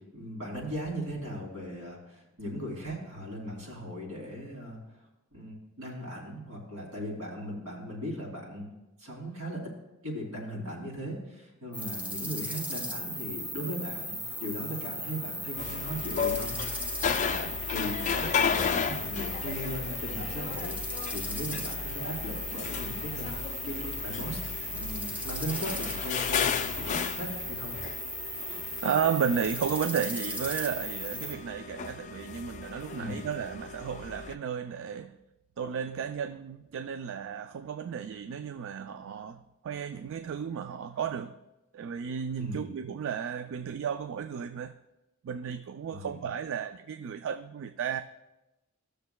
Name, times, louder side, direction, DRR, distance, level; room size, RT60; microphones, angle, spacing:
voice 1, 0.1-4.8 5.3-8.7 9.0-9.7 10.0-24.4 24.7-27.7 32.9-33.2 42.4-42.7 45.9-46.2, equal, 80° right, 2.8 m, -38 dB
sound 1, 11.7-31.3, equal, 5° right, 0.8 m, -37 dB
sound 2, 15.6-34.3, left 6 dB, 35° left, 0.3 m, -34 dB
voice 2, 28.8-35.2 35.6-41.3 41.7-44.8 45.2-48.0, right 7 dB, 60° right, 0.3 m, -33 dB
17.5 x 6.7 x 2.2 m
head